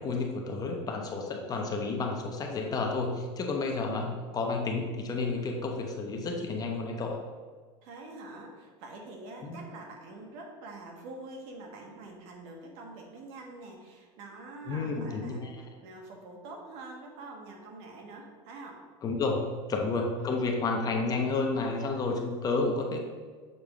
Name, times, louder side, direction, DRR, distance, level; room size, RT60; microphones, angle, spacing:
voice 1, 0.0-4.1 4.3-7.2 9.4-9.6 14.7-15.6 19.0-19.4 19.7-23.0, left 3 dB, 25° left, 2 dB, 0.8 m, -31 dB
voice 2, 1.5-1.9 3.8-4.2 7.8-15.5 15.8-18.8 20.2-20.4, right 2 dB, 65° right, 1 dB, 1.4 m, -45 dB
6.7 x 3.5 x 5.0 m, 1.5 s
supercardioid pair, 135°, 14 cm